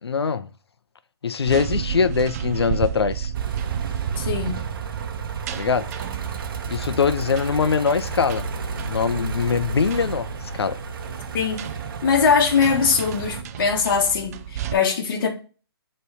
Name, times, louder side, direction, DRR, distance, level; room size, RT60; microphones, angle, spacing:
voice 1, 0.0-0.5 1.2-3.3 5.5-5.9 6.7-8.5 8.8-10.3 10.5-10.8, left 5 dB, 80° left, 0.6 m, -22 dB
sound 1, 1.4-14.7, right 9 dB, 40° right, 0.4 m, -32 dB
sound 2, 3.3-13.4, right 4 dB, 55° right, 1.0 m, -33 dB
voice 2, 4.2-4.5 11.3-11.6 12.0-15.3, left 6 dB, 55° left, 1.4 m, -21 dB
6.8 x 3.3 x 4.9 m
hypercardioid pair, 140°, 13 cm